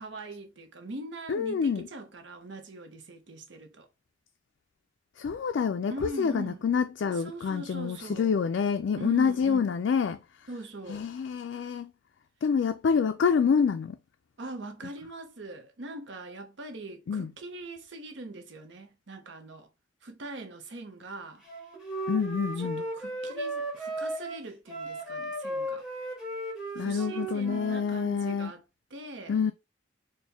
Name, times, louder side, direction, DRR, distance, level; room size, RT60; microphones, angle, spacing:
voice 1, 0.0-3.9 5.9-6.6 7.2-8.3 8.9-9.7 10.5-11.1 14.4-19.7 20.0-21.4 22.6-25.8 26.7-28.6 28.9-29.4, right 2 dB, 65° right, 0.8 m, -42 dB
voice 2, 1.3-1.9 5.2-10.5 10.9-11.9 12.4-14.0 17.1-17.3 22.1-22.8 26.8-28.5 29.3-29.5, left 6 dB, 65° left, 0.3 m, -27 dB
Wind instrument woodwind instrument, 21.5-27.8, right 1 dB, ahead, 1.1 m, -35 dB
4.3 x 2.2 x 3.4 m
head